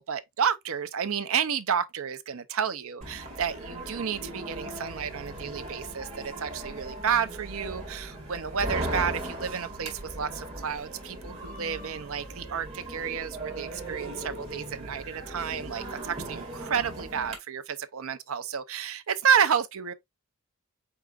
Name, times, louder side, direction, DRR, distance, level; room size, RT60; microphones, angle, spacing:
voice 1, 0.0-19.9, right 7 dB, 65° right, 0.6 m, -30 dB
sound 1, 3.0-17.4, right 1 dB, 30° right, 1.9 m, -38 dB
4.8 x 4.6 x 2.4 m
head